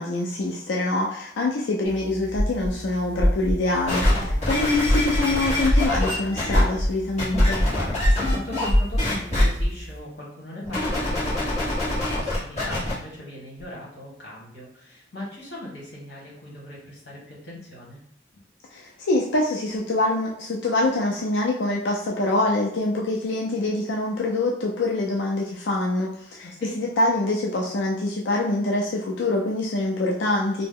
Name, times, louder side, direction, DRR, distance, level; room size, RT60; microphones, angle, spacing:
voice 1, 0.0-7.6 18.7-26.5 26.8-30.7, left 2 dB, 85° left, -2 dB, 0.4 m, -25 dB
sound 1, 1.9-10.0, equal, 35° right, 0.6 m, -22 dB
sound 2, 3.9-6.6 7.2-8.7 9.0-9.4 10.7-12.9 13.6-13.7, left 1 dB, 35° left, 1.3 m, -26 dB
voice 2, 4.2-4.7 7.7-18.0 26.4-26.7, left 1 dB, 70° left, -5 dB, 1.2 m, -39 dB
2.8 x 2.0 x 3.7 m, 0.70 s
head